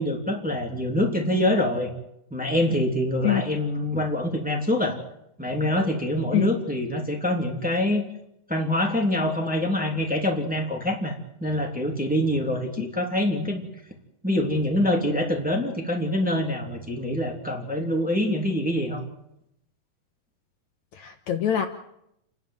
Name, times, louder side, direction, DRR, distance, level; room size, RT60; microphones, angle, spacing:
voice 1, 0.0-1.9 2.3-5.0 5.4-8.0 8.5-11.1 11.4-13.6 14.2-19.0, left 1 dB, 5° right, 1 dB, 2.6 m, -25 dB
voice 2, 20.9-21.7, left 10 dB, 65° left, 7 dB, 2.2 m, -24 dB
29.0 x 11.5 x 9.1 m, 0.79 s
omnidirectional pair, 3.9 m